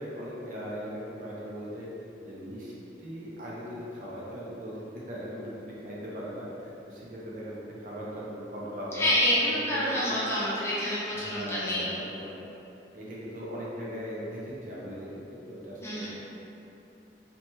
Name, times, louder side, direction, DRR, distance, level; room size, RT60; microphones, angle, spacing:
voice 1, 0.0-1.9 2.2-2.7 3.0-9.1 9.4-10.1 11.1-12.4 12.9-16.0, equal, 50° right, -6 dB, 0.5 m, -39 dB
voice 2, 8.9-12.0 15.8-16.1, left 1 dB, 15° left, -9 dB, 0.5 m, -27 dB
2.8 x 2.1 x 2.9 m, 2.9 s
head